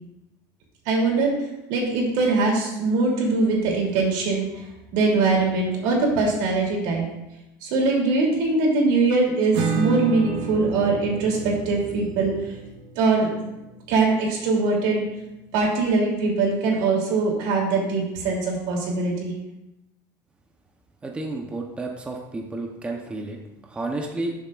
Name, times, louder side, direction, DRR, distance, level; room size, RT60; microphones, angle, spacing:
voice 1, 0.9-1.3 1.7-4.5 4.9-7.0 7.6-12.3 13.0-13.3 13.9-15.0 15.5-19.3, right 3 dB, 85° right, -1 dB, 2.9 m, -22 dB
Acoustic guitar / Strum, 9.5-15.0, right 5 dB, 60° right, 1.0 m, -32 dB
voice 2, 21.0-24.3, right 2 dB, 10° right, 1 dB, 0.8 m, -31 dB
12.5 x 7.2 x 2.5 m, 0.94 s
cardioid pair, 160°, 9 cm